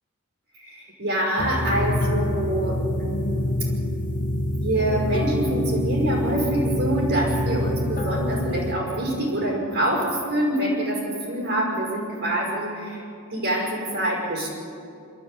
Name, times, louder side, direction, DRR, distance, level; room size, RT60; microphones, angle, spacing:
voice 1, 0.5-3.7 4.6-13.0 13.3-14.5, right 1 dB, 55° right, -3 dB, 5.7 m, -26 dB
sound 1, 1.4-8.7, left 1 dB, 35° left, 1.4 m, -26 dB
26.0 x 13.5 x 8.3 m, 2.6 s
head